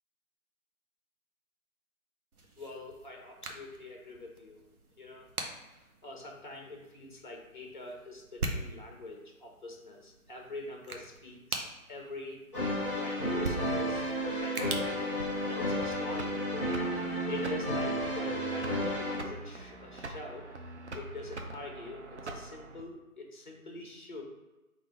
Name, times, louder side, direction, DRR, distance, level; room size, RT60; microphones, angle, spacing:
sound 1, 2.3-16.0, right 2 dB, 75° right, 0.9 m, -43 dB
voice 1, 2.6-4.7 5.0-5.3 5.7-12.4 12.9-15.2 15.5-16.4 17.2-20.5 20.9-24.2, left 2 dB, 35° left, 1 dB, 0.8 m, -45 dB
sound 2, 12.5-19.2, equal, ahead, 1.3 m, -32 dB
sound 3, 15.2-22.8, right 2 dB, 50° right, 0.6 m, -44 dB
4.0 x 2.6 x 4.4 m, 1.0 s
figure-of-eight pair, 160°, 44 cm